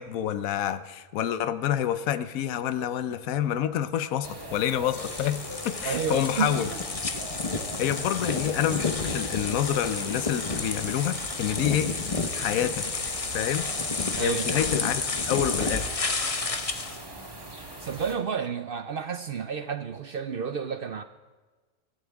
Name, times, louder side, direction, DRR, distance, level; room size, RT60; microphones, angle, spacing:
voice 1, 0.0-5.4 5.6-6.7 7.8-11.9 12.3-12.9 13.3-13.7 14.2-15.9, left 10 dB, 75° left, 12 dB, 1.1 m, -28 dB
sound 1, 4.2-18.1, right 1 dB, 15° right, 1.7 m, -41 dB
sound 2, 5.0-17.0, left 3 dB, 30° left, 0.8 m, -31 dB
voice 2, 5.8-6.8 14.2-14.5 17.8-21.0, right 6 dB, 60° right, 9 dB, 0.6 m, -31 dB
22.5 x 15.0 x 3.5 m, 1.3 s
omnidirectional pair, 1.5 m